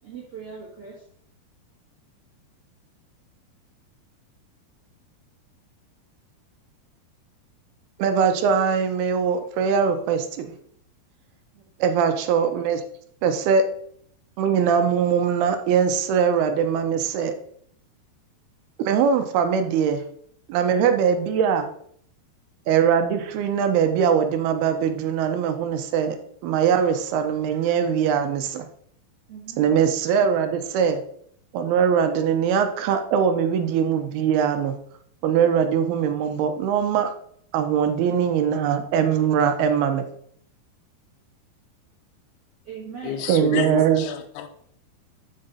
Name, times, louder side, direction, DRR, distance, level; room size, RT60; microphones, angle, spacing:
voice 1, 0.0-1.1 11.5-11.9 29.3-29.7 42.6-43.3, right 6 dB, 50° right, 2.0 m, -40 dB
voice 2, 8.0-10.5 11.8-12.8 13.2-13.6 14.4-17.3 18.8-20.0 20.5-21.7 22.7-26.2 26.4-28.7 29.6-31.0 31.5-34.8 35.2-37.1 37.5-40.1 43.3-44.0, right 7 dB, 75° right, 2.5 m, -21 dB
voice 3, 43.0-44.5, left 7 dB, 80° left, 2.9 m, -29 dB
8.7 x 5.1 x 4.1 m
omnidirectional pair, 4.8 m